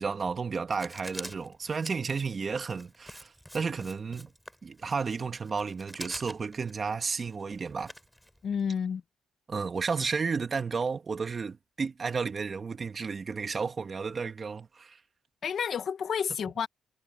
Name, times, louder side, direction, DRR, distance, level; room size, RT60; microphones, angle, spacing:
voice 1, 0.0-4.3 4.6-7.9 9.5-15.0, right 5 dB, 40° right, 2.0 m, -32 dB
Writing, 0.7-8.7, equal, ahead, 6.8 m, -47 dB
voice 2, 8.4-9.0 15.4-16.7, left 7 dB, 55° left, 1.2 m, -30 dB
cardioid pair, 90°, 0 cm